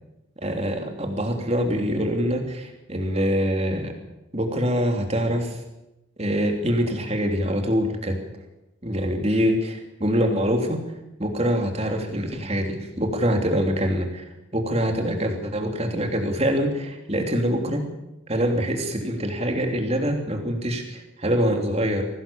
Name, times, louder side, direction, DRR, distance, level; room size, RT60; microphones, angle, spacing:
voice 1, 0.4-3.9 4.3-5.6 6.2-8.2 8.8-10.9 11.2-14.2 14.5-17.9 18.3-22.0, equal, 30° right, 3 dB, 3.3 m, -24 dB
24.0 x 18.5 x 7.2 m, 0.97 s
head